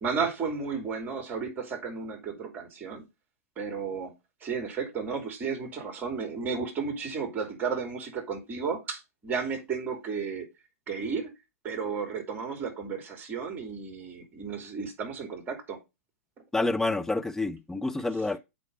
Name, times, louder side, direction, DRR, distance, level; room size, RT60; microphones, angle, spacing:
voice 1, 0.0-3.0 3.6-4.1 4.4-10.5 10.9-11.3 11.6-15.8, right 5 dB, 20° right, 3.1 m, -33 dB
voice 2, 16.5-18.4, left 2 dB, 5° left, 0.6 m, -28 dB
8.1 x 4.7 x 5.5 m
figure-of-eight pair, 105°, 8 cm